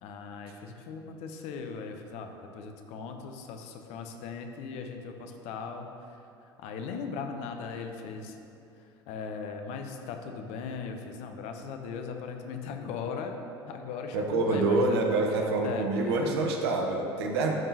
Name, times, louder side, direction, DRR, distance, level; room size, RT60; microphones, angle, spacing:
voice 1, 0.0-5.9 6.6-8.4 9.1-13.4 13.7-15.0 15.6-16.5, left 5 dB, 50° left, 5 dB, 0.6 m, -38 dB
voice 2, 14.1-17.6, right 3 dB, 65° right, 2 dB, 0.7 m, -26 dB
10.5 x 3.6 x 2.8 m, 2.8 s
figure-of-eight pair, 70°, 14 cm